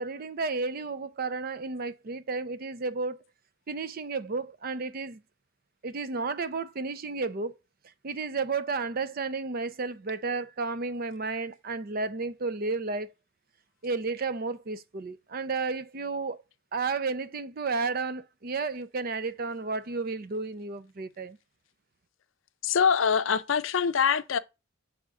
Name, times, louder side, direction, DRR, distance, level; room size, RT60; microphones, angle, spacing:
voice 1, 0.0-3.2 3.7-5.2 5.8-7.5 8.0-13.1 13.8-16.4 16.7-21.4, right 4 dB, 45° right, 0.5 m, -32 dB
voice 2, 22.6-24.4, left 6 dB, 70° left, 0.5 m, -24 dB
7.5 x 3.6 x 3.6 m
head